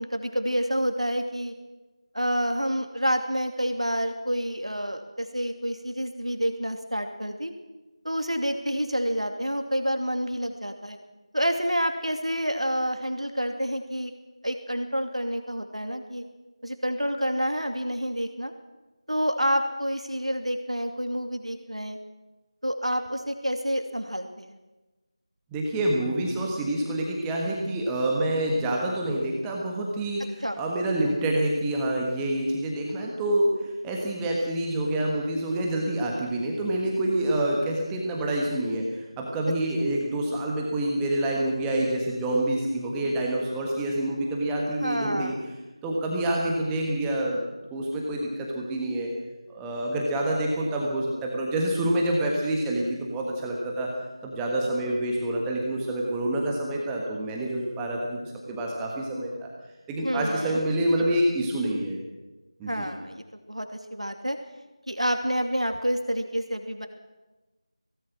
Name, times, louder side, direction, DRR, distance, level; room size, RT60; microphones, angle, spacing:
voice 1, 0.0-1.5 2.1-7.5 8.0-11.0 11.3-14.1 14.4-16.2 16.6-18.5 19.1-22.0 22.6-24.6 30.4-30.6 44.8-45.4 60.0-60.6 62.7-64.4 64.9-66.9, equal, 90° right, 5 dB, 2.7 m, -28 dB
voice 2, 25.5-45.3 45.8-47.4 47.7-49.1 49.5-53.9 54.2-59.5 59.9-62.0 62.6-62.9, right 1 dB, 5° right, -2 dB, 1.5 m, -27 dB
24.0 x 18.0 x 6.1 m, 1.1 s
figure-of-eight pair, 170°, 3 cm